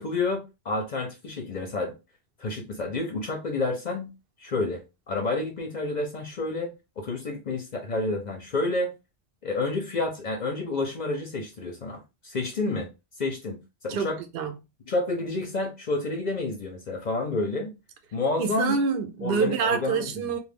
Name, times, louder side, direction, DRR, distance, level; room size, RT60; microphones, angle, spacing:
voice 1, 0.0-1.9 2.4-4.1 4.4-8.9 9.4-12.9 13.2-14.2 14.9-17.7 18.1-18.8 19.2-20.3, left 3 dB, 50° left, 0.6 m, -29 dB
voice 2, 13.9-14.5 18.4-20.4, right 5 dB, 65° right, 0.7 m, -27 dB
2.3 x 2.2 x 3.3 m
omnidirectional pair, 1.2 m